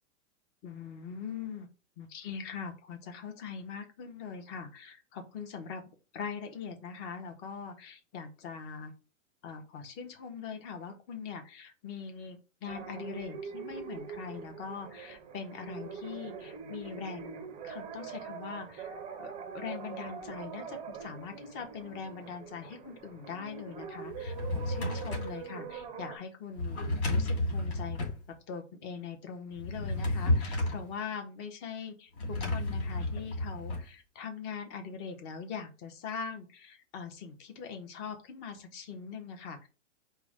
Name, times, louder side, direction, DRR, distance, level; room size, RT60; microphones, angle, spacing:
voice 1, 0.6-1.7 2.0-5.8 6.1-8.9 9.4-28.0 28.5-39.7, left 6 dB, 30° left, 5 dB, 0.8 m, -42 dB
sound 1, 12.7-26.2, right 6 dB, 15° right, 0.5 m, -43 dB
Drawer open or close, 24.1-25.4 26.6-28.2 29.5-30.9 32.2-33.8, left 2 dB, 55° left, 2.4 m, -32 dB
4.9 x 2.2 x 4.8 m, 0.33 s
hypercardioid pair, 140°, 37 cm